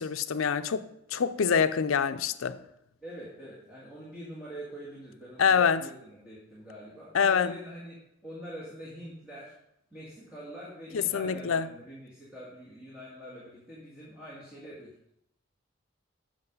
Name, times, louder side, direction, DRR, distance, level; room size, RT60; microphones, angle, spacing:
voice 1, 0.0-2.6 5.4-5.8 7.1-7.6 10.9-11.7, left 6 dB, 85° left, 0.5 m, -26 dB
voice 2, 3.0-8.0 8.2-9.5 9.9-14.9, equal, 5° right, 2.1 m, -44 dB
7.9 x 6.3 x 5.4 m
head